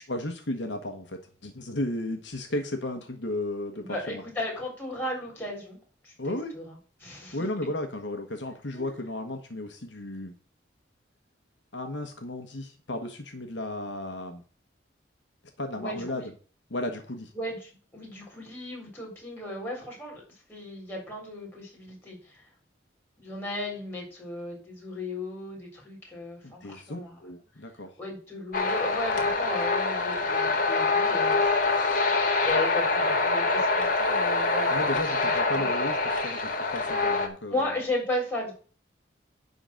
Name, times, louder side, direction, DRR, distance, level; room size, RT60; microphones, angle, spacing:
voice 1, 0.1-4.2 6.2-6.5 7.3-10.4 11.7-14.4 15.6-16.3 16.7-17.3 26.4-28.0 34.7-37.7, left 1 dB, 70° left, 5 dB, 1.3 m, -34 dB
voice 2, 3.8-5.8 6.0-6.7 7.0-7.5 8.7-8.9 15.7-16.3 17.3-20.2 20.5-22.4 23.2-27.2 28.0-31.6 32.4-35.7 37.0-37.1 37.5-38.5, left 1 dB, 10° left, -2 dB, 4.1 m, -35 dB
sound 1, 28.5-37.3, left 3 dB, 45° left, 1.8 m, -25 dB
11.0 x 3.9 x 7.6 m, 0.41 s
head